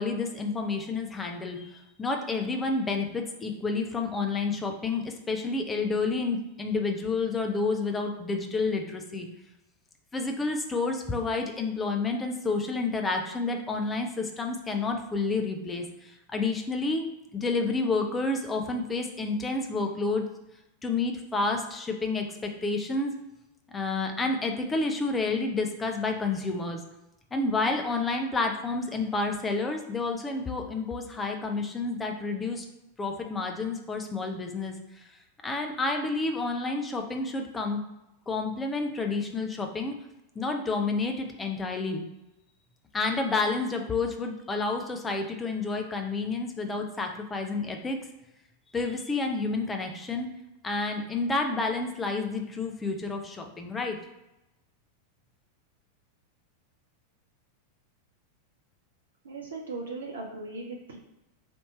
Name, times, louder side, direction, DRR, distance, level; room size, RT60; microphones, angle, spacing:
voice 1, 0.0-1.7 2.0-9.3 10.1-15.8 16.3-17.0 17.3-20.2 20.8-23.1 23.7-26.8 27.3-32.6 33.0-34.8 35.4-37.8 38.3-39.9 40.4-42.0 42.9-48.0 48.7-50.3 50.6-54.0, left 3 dB, 15° left, 3 dB, 0.6 m, -29 dB
voice 2, 59.3-61.0, right 3 dB, 65° right, -1 dB, 0.5 m, -38 dB
3.4 x 2.8 x 4.2 m, 0.93 s
figure-of-eight pair, 90°, 0 cm